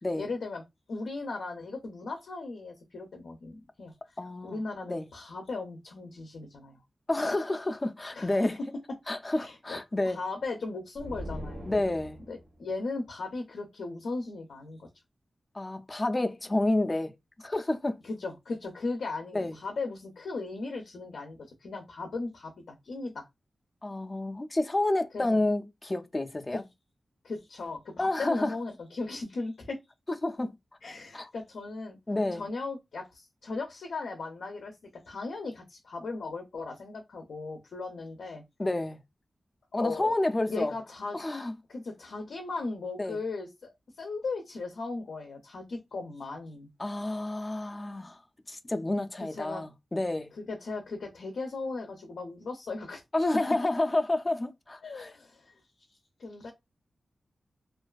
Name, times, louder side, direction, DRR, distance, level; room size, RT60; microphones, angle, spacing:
voice 1, 0.2-0.6 0.9-6.8 8.1-8.5 9.4-9.8 10.1-11.7 12.3-14.9 18.0-23.3 25.1-25.4 26.5-26.6 27.2-29.8 30.8-32.0 32.3-34.7 35.1-38.4 39.7-40.1 40.5-41.2 41.7-43.7 44.0-46.7 49.4-49.6 50.3-53.0 54.8-55.5 56.2-56.5, left 3 dB, 85° left, 0.5 m, -37 dB
voice 2, 4.2-4.6 4.9-5.1 7.1-8.6 9.1-10.2 11.7-12.2 15.5-17.1 17.4-18.0 19.3-19.6 23.8-26.6 28.0-28.5 30.1-30.5 31.1-31.3 32.1-32.4 38.6-39.0 39.7-40.7 41.1-41.5 43.0-43.2 46.8-48.2 48.5-50.3 53.1-55.1, left 2 dB, 25° left, 0.3 m, -29 dB
sound 1, 10.9-12.6, equal, 85° right, 1.0 m, -41 dB
2.4 x 2.3 x 2.3 m
wide cardioid pair, 100°, 0 cm